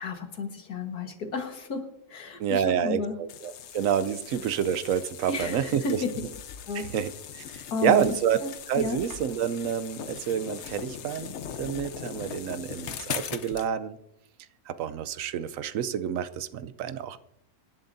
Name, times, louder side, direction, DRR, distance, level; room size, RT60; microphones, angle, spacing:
voice 1, 0.0-3.2 5.3-6.1 6.7-7.0 7.7-8.1 8.4-9.0, left 3 dB, 90° left, 5 dB, 2.1 m, -32 dB
voice 2, 2.4-6.0 6.7-8.4 8.7-14.0 14.7-17.2, right 9 dB, 65° right, 14 dB, 1.0 m, -28 dB
sound 1, 3.3-13.7, left 8 dB, 60° left, 0.9 m, -40 dB
25.0 x 10.5 x 2.7 m, 0.85 s
omnidirectional pair, 1.6 m